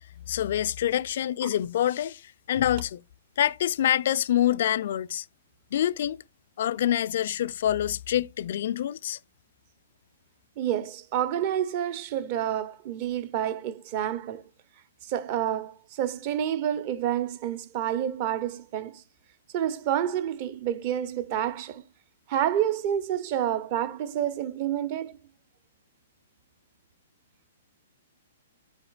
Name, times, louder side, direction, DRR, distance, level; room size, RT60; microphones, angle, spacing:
voice 1, 0.3-3.0 3.4-5.2 5.7-6.2 6.6-9.2, left 11 dB, 60° left, 0.3 m, -26 dB
voice 2, 10.6-14.4 15.0-19.0 19.5-21.8 22.3-25.2, right 10 dB, 40° right, 0.8 m, -29 dB
7.9 x 7.8 x 2.4 m
hypercardioid pair, 140°, 0 cm